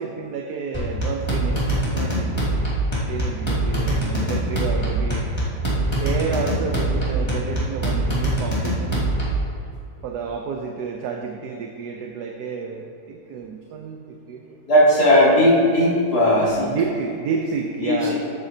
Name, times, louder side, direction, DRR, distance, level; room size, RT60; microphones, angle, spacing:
voice 1, 0.0-2.3 3.1-5.2 5.7-9.1 10.0-14.6 16.7-18.1, right 5 dB, 80° right, 2 dB, 1.3 m, -30 dB
sound 1, 0.7-9.5, right 1 dB, 15° left, 2.3 m, -23 dB
voice 2, 14.7-16.7 17.8-18.1, equal, 70° left, -8 dB, 3.3 m, -17 dB
14.0 x 9.3 x 2.8 m, 2.5 s
omnidirectional pair, 1.7 m